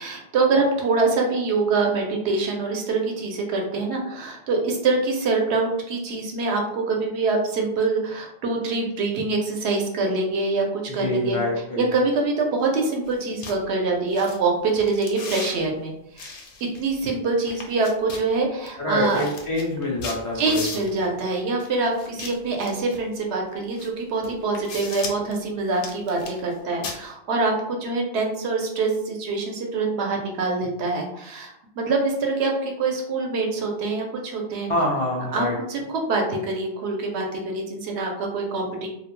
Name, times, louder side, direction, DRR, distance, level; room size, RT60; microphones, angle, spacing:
voice 1, 0.0-11.4 11.8-16.3 16.8-19.2 20.3-34.7 35.3-38.9, right 3 dB, 85° right, 1 dB, 0.9 m, -25 dB
voice 2, 11.0-11.8 18.8-20.7 34.7-35.6, left 1 dB, 50° left, -5 dB, 0.4 m, -25 dB
sound 1, 13.1-13.2 13.4-13.6 14.1-14.4 14.7-15.6 16.2-17.1 17.5-18.3 18.7-18.8 19.0-21.0 22.0-23.0 23.8-23.9 24.2-25.3 25.7-26.5 26.8-27.0, left 4 dB, 75° left, 0.8 m, -36 dB
2.3 x 2.1 x 3.0 m, 0.80 s
omnidirectional pair, 1.1 m